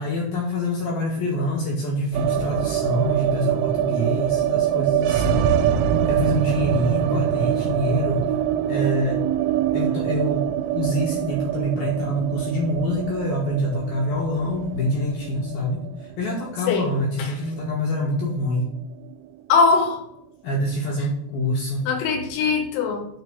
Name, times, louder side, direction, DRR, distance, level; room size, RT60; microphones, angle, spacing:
voice 1, 0.0-5.5 6.0-8.3 8.7-9.2 9.7-10.5 10.7-18.7 20.4-21.8, equal, 65° left, -2 dB, 2.4 m, -25 dB
sound 1, 2.1-18.3 18.5-18.6 18.9-19.6, right 11 dB, 85° right, 3.2 m, -25 dB
voice 2, 19.5-20.0 21.9-23.1, left 4 dB, 90° left, 2 dB, 4.3 m, -20 dB
9.5 x 3.3 x 6.0 m, 0.73 s
omnidirectional pair, 5.9 m